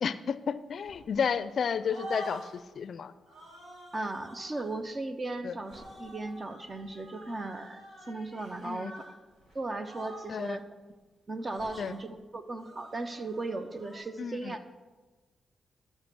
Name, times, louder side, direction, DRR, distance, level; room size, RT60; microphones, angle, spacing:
voice 1, 0.0-3.1 5.4-5.5 8.6-8.9 10.3-10.6 11.8-11.9 14.2-14.5, left 6 dB, 65° left, 15 dB, 0.4 m, -32 dB
sound 1, 0.8-1.5 1.8-2.7 3.3-4.7 5.6-9.1 9.4-9.5 9.8-10.5 11.4-12.0 12.5-14.0, right 1 dB, 70° right, 4.1 m, -47 dB
voice 2, 3.9-9.1 9.5-10.6 11.3-14.6, right 2 dB, 35° right, 9 dB, 1.0 m, -37 dB
13.0 x 5.9 x 6.1 m, 1.3 s
supercardioid pair, 55°, 0 cm